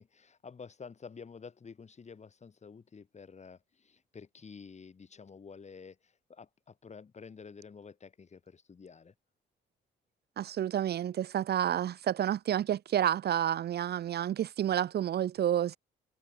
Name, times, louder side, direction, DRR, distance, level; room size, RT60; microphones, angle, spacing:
voice 1, 0.0-9.1, left 5 dB, 35° left, 2.0 m, -50 dB
voice 2, 10.4-15.8, right 10 dB, 55° right, 0.6 m, -30 dB
cardioid pair, 90°, 20 cm